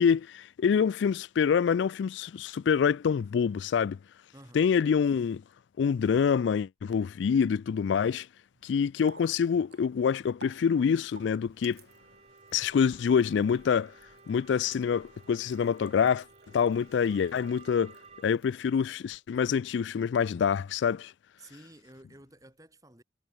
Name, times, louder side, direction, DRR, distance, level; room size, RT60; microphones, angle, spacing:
voice 1, 0.0-4.0 4.5-5.4 5.8-8.3 8.6-11.8 12.5-13.9 14.3-16.2 16.5-17.9 18.2-21.1, left 6 dB, 80° left, 0.3 m, -26 dB
voice 2, 4.3-4.7 17.0-17.3 21.4-23.0, right 1 dB, 20° right, 4.1 m, -52 dB
Water tap faucet, 8.5-19.3, right 3 dB, 60° right, 5.7 m, -56 dB
sound 1, 11.9-18.3, right 4 dB, 35° right, 7.7 m, -56 dB
head